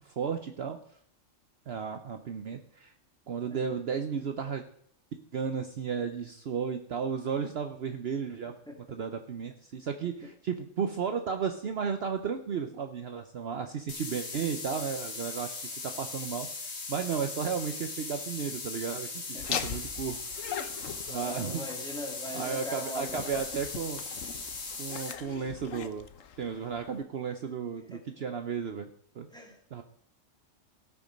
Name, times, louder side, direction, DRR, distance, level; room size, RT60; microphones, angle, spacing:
voice 1, 0.0-0.8 1.7-2.9 3.3-4.6 5.3-8.5 8.9-20.5 21.1-21.6 22.3-24.0 24.8-26.1 26.4-29.3 29.7-29.8, right 6 dB, 55° right, 7 dB, 1.0 m, -34 dB
voice 2, 8.7-9.0 10.0-10.1 19.3-19.7 20.4-20.5 21.1-23.3 27.9-28.3 29.3-29.8, left 1 dB, 5° left, 1 dB, 2.4 m, -41 dB
sound 1, 13.9-25.1, left 3 dB, 60° left, 1.8 m, -39 dB
Laughter, 19.4-27.0, left 8 dB, 85° left, 1.2 m, -41 dB
17.5 x 6.1 x 5.2 m, 0.65 s
omnidirectional pair, 1.3 m